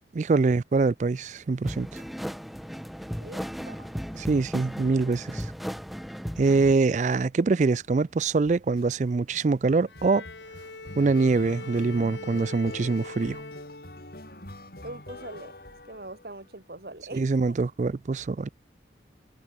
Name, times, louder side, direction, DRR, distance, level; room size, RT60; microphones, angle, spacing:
voice 1, 0.1-2.0 4.2-5.5 6.4-10.2 11.0-13.4 17.1-18.5, right 3 dB, 40° right, 0.4 m, -24 dB
sound 1, 1.7-6.7, equal, ahead, 0.8 m, -36 dB
voice 2, 3.2-3.9 14.8-15.5 15.9-17.3, right 2 dB, 55° right, 2.1 m, -42 dB
Country intro, 8.4-8.8 9.3-16.5, left 1 dB, 55° left, 6.3 m, -45 dB
Bowed string instrument, 9.9-14.3, left 3 dB, 90° left, 3.3 m, -42 dB
head